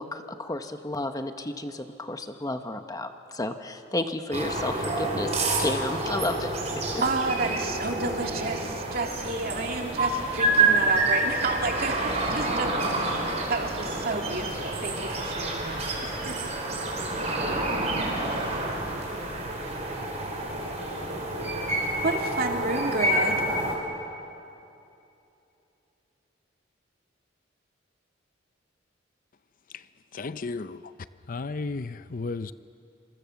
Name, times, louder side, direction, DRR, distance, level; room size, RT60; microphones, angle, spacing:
voice 1, 0.0-6.5, left 2 dB, 20° left, 7 dB, 1.1 m, -32 dB
sound 1, 4.3-23.7, right 2 dB, 35° right, 4.6 m, -28 dB
voice 2, 7.0-16.5 16.7-17.0 22.0-23.4, right 3 dB, 50° right, 2 dB, 2.6 m, -31 dB
sound 2, 9.3-11.2 13.0-14.9 16.7-18.6, equal, 10° right, 5.9 m, -45 dB
voice 3, 30.1-30.9 31.3-32.5, left 3 dB, 45° left, 13 dB, 0.5 m, -33 dB
27.5 x 24.5 x 7.1 m, 2.7 s
head